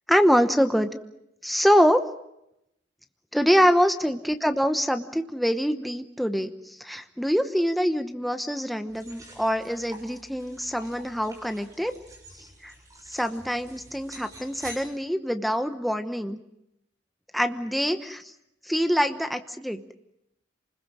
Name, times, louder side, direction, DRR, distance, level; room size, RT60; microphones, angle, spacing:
voice 1, 0.1-0.9 1.4-2.1 3.3-11.9 12.6-12.7 13.1-16.4 17.3-18.3 18.6-19.8, equal, ahead, 7 dB, 1.0 m, -24 dB
sound 1, 8.9-14.8, right 1 dB, 20° right, 6.4 m, -47 dB
28.5 x 21.0 x 6.2 m, 0.81 s
head